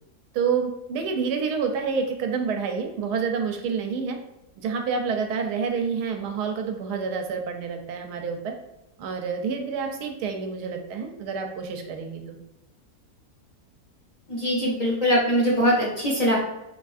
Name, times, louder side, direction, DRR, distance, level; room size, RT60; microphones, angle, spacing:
voice 1, 0.3-4.2 4.6-8.5 9.0-12.4, right 5 dB, 80° right, 4 dB, 1.1 m, -28 dB
voice 2, 14.3-16.3, equal, 55° left, -5 dB, 0.4 m, -22 dB
3.7 x 2.6 x 2.4 m, 0.92 s
omnidirectional pair, 1.7 m